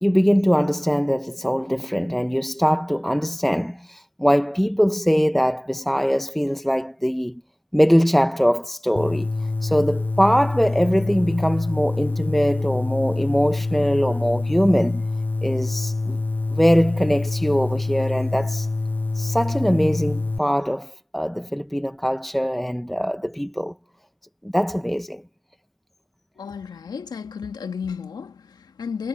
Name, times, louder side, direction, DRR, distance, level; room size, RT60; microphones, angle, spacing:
voice 1, 0.0-7.4 7.7-9.3 9.6-15.1 15.4-16.2 16.5-18.7 19.1-23.7 24.4-25.2, equal, ahead, 0.8 m, -22 dB
sound 1, 9.0-20.4, left 3 dB, 25° left, 1.7 m, -26 dB
voice 2, 26.4-29.1, left 6 dB, 70° left, 2.1 m, -33 dB
cardioid pair, 60°, 7 cm